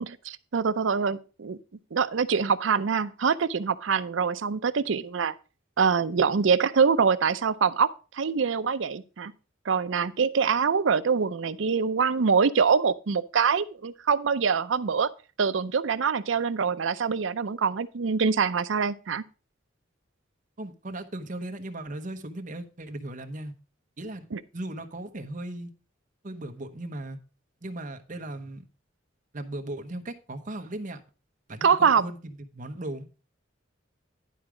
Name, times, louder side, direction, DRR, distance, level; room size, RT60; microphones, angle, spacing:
voice 1, 0.0-1.6 1.9-5.3 5.8-9.3 9.7-15.1 15.4-19.2 24.3-24.4 31.6-32.0, right 5 dB, 70° right, 0.5 m, -24 dB
voice 2, 20.6-23.5 24.0-24.2 24.5-25.7 26.2-27.2 27.6-28.6 29.3-31.0 31.5-33.2, right 1 dB, 40° right, 0.9 m, -37 dB
11.0 x 4.8 x 4.9 m
head